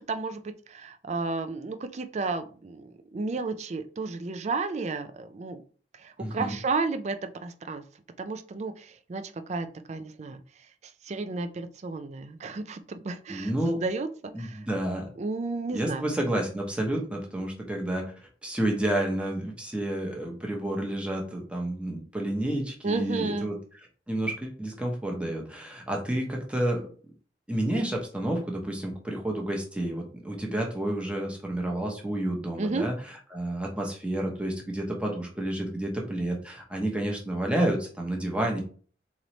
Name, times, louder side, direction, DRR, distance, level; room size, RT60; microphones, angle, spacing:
voice 1, 0.1-5.6 5.9-7.8 8.2-9.2 9.5-10.4 11.0-14.6 15.2-16.1 22.8-23.5 32.6-32.9, right 3 dB, 40° right, 9 dB, 0.4 m, -32 dB
voice 2, 6.2-6.6 13.3-13.8 14.3-15.1 15.7-18.1 18.4-23.6 24.1-26.8 27.5-32.9 33.3-38.6, right 1 dB, 5° right, 0 dB, 0.9 m, -30 dB
3.9 x 3.1 x 3.1 m, 0.42 s
head